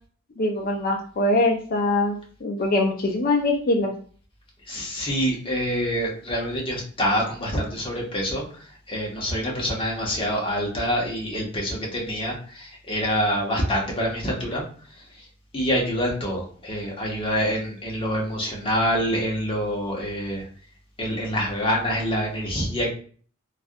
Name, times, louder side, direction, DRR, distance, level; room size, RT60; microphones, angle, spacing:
voice 1, 0.4-3.9, left 2 dB, 45° left, 3 dB, 0.4 m, -23 dB
voice 2, 4.7-14.6 15.0-15.1 15.5-20.4 21.0-22.9, equal, 25° left, -2 dB, 0.9 m, -26 dB
3.2 x 2.4 x 2.5 m, 0.44 s
head